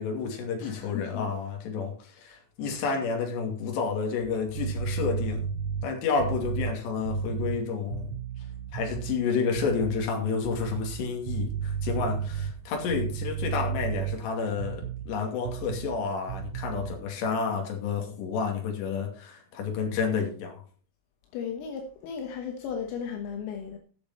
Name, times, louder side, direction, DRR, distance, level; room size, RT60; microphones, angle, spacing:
voice 1, 0.0-5.5 5.8-8.1 8.7-20.6, left 5 dB, 60° left, 4.3 m, -30 dB
voice 2, 0.6-1.3 21.3-23.8, left 7 dB, 80° left, 3.8 m, -35 dB
sound 1, 4.6-9.2 9.5-10.1 10.4-15.1 15.5-16.0 16.3-17.0, right 7 dB, 80° right, 2.8 m, -33 dB
17.5 x 6.8 x 4.2 m
omnidirectional pair, 6.0 m